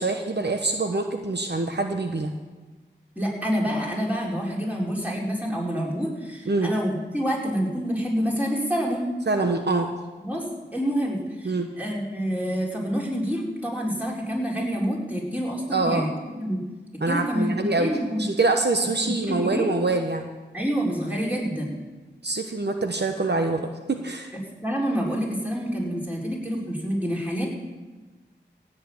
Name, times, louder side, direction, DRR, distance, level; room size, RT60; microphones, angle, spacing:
voice 1, 0.0-2.3 6.5-6.7 9.3-9.9 11.4-11.7 15.7-16.0 17.0-17.9 18.2-20.3 22.2-24.3, right 3 dB, 65° right, 4 dB, 1.0 m, -25 dB
voice 2, 3.2-9.1 10.2-16.1 16.4-16.6 17.1-18.2 19.0-19.7 20.5-21.7 24.6-27.5, equal, 10° right, -4 dB, 4.6 m, -27 dB
16.5 x 6.6 x 8.8 m, 1.3 s
wide cardioid pair, 45°, 19 cm